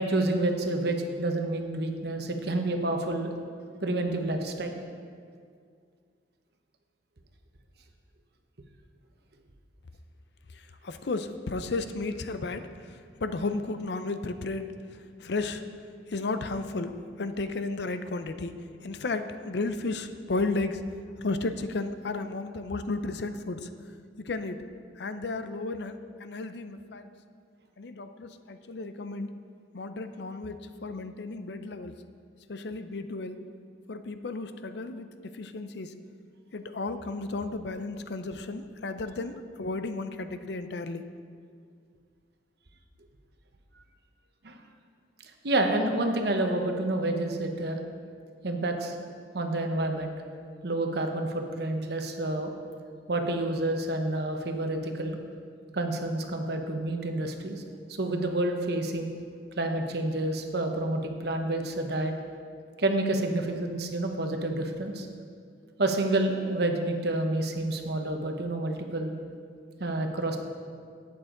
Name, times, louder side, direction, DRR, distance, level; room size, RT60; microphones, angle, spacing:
voice 1, 0.0-3.3 3.8-4.8 44.4-44.5 45.4-47.8 48.4-49.0 49.3-50.2 50.6-52.5 53.1-55.2 55.7-57.6 58.0-59.1 59.6-62.1 62.8-65.1 65.8-69.1 69.8-70.4, right 2 dB, 60° right, 4 dB, 1.0 m, -29 dB
voice 2, 10.8-14.7 14.9-15.6 16.1-16.9 17.2-18.5 18.8-20.8 21.2-23.7 24.2-24.6 25.0-27.1 27.8-29.3 29.7-31.9 32.5-33.4 33.9-35.9 36.5-41.0, left 3 dB, 65° left, 10 dB, 0.5 m, -33 dB
12.0 x 8.6 x 3.8 m, 2.1 s
head